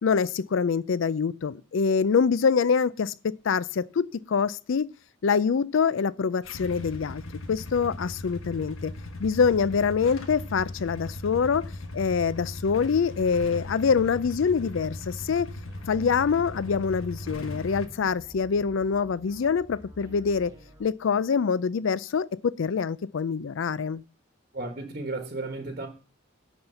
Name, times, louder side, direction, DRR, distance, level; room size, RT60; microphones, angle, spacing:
voice 1, 0.0-4.9 5.2-7.2 7.5-8.9 9.2-15.5 15.9-20.5 20.8-24.0, left 6 dB, 70° left, 0.4 m, -25 dB
Motorcycle / Engine starting / Idling, 6.4-17.9, left 2 dB, 90° left, 1.3 m, -38 dB
sound 1, 15.6-20.9, equal, 15° right, 1.7 m, -50 dB
voice 2, 24.5-25.9, right 2 dB, 40° right, 1.2 m, -34 dB
11.0 x 4.3 x 7.8 m
head